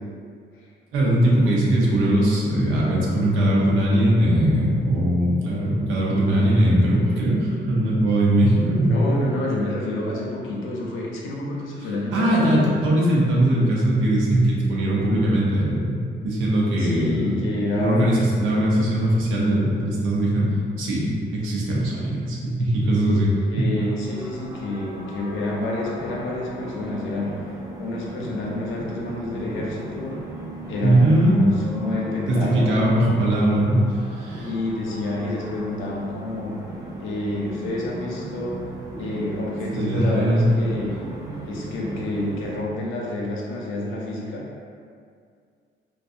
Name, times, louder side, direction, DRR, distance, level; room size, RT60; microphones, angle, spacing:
voice 1, 0.9-9.2 12.1-20.5 20.8-23.7 30.8-31.4 32.3-33.9 34.2-34.5 39.7-40.5, right 1 dB, 90° right, -5 dB, 0.6 m, -20 dB
voice 2, 8.9-12.8 16.8-18.7 23.5-27.3 27.8-30.2 30.7-32.9 34.4-36.6 37.0-38.6 39.0-41.0 41.5-44.4, left 2 dB, 80° left, -3 dB, 0.6 m, -28 dB
sound 1, 23.7-42.6, right 2 dB, 20° right, 0.4 m, -37 dB
2.6 x 2.2 x 2.4 m, 2.2 s
cardioid pair, 90°, 20 cm